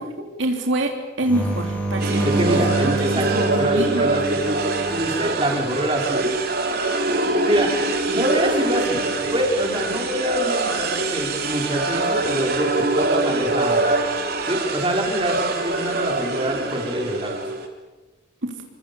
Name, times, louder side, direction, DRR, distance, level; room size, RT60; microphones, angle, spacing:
voice 1, 0.4-0.9 1.2-2.9 3.3-4.1 18.4-18.5, right 1 dB, 80° right, 3 dB, 3.4 m, -25 dB
sound 1, 1.2-5.9 9.1-9.7, right 3 dB, 5° left, 5.2 m, -28 dB
sound 2, 2.0-17.7, right 2 dB, 50° right, 3.6 m, -24 dB
voice 2, 2.2-4.6 4.9-6.3 7.4-7.7 8.0-9.0 9.3-13.9 14.4-17.3, right 1 dB, 25° right, 0 dB, 5.3 m, -25 dB
28.0 x 25.0 x 7.1 m, 1.1 s
head